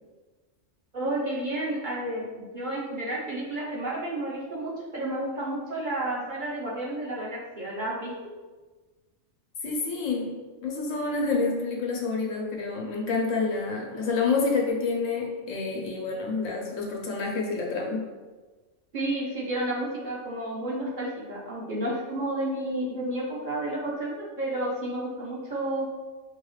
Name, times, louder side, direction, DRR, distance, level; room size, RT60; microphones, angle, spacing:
voice 1, 0.9-2.3 2.5-8.1 18.9-25.9, right 1 dB, 45° right, -4 dB, 0.7 m, -31 dB
voice 2, 9.6-10.3 10.6-18.0, left 4 dB, 90° left, 0 dB, 1.1 m, -28 dB
4.7 x 2.3 x 3.1 m, 1.3 s
omnidirectional pair, 1.3 m